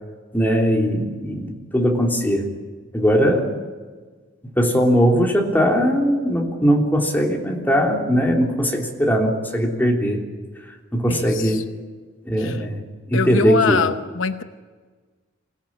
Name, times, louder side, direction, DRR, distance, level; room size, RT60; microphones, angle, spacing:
voice 1, 0.3-2.5 2.9-3.5 4.6-10.2 10.9-11.7 12.3-12.8 13.1-13.8, equal, 10° left, 0 dB, 3.5 m, -19 dB
voice 2, 11.1-11.6 12.4-12.6 13.1-14.4, left 5 dB, 75° left, 10 dB, 0.8 m, -23 dB
26.0 x 17.5 x 8.9 m, 1.4 s
head